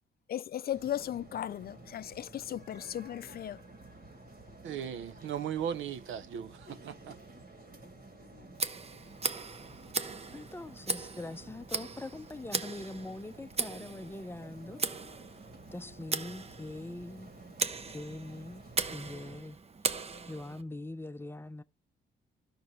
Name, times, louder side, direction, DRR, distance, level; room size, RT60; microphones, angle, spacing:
voice 1, 0.3-3.6, left 11 dB, 50° left, 0.5 m, -36 dB
sound 1, 0.7-19.4, right 2 dB, 50° right, 3.0 m, -52 dB
voice 2, 4.6-7.2, right 9 dB, 75° right, 0.8 m, -37 dB
Tick, 8.5-20.6, right 4 dB, 30° right, 0.8 m, -38 dB
voice 3, 10.3-14.8 15.7-17.3 17.9-18.6 18.9-19.6 20.3-21.6, left 2 dB, 10° left, 0.6 m, -42 dB
13.5 x 5.9 x 3.2 m
cardioid pair, 90°, 20 cm